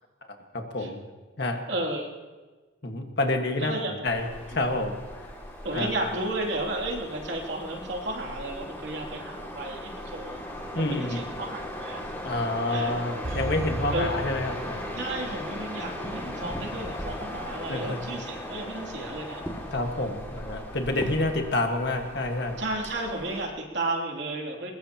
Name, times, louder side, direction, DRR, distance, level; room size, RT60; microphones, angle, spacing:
voice 1, 0.5-1.0 1.4-1.6 2.8-5.3 5.7-5.9 10.7-11.2 12.2-14.8 17.7-18.0 19.7-22.6, left 2 dB, 55° left, 4 dB, 1.6 m, -28 dB
voice 2, 1.7-2.1 3.6-4.1 4.5-4.6 5.6-10.4 10.7-12.0 12.7-12.9 13.9-14.1 15.0-19.4 20.9-21.2 22.6-24.7, right 2 dB, 60° right, 0 dB, 2.9 m, -33 dB
sound 1, 4.1-23.5, equal, 10° left, 2.3 m, -38 dB
sound 2, 13.2-15.4 15.7-15.8, right 1 dB, 75° right, 1.8 m, -35 dB
22.0 x 21.5 x 3.0 m, 1.3 s
head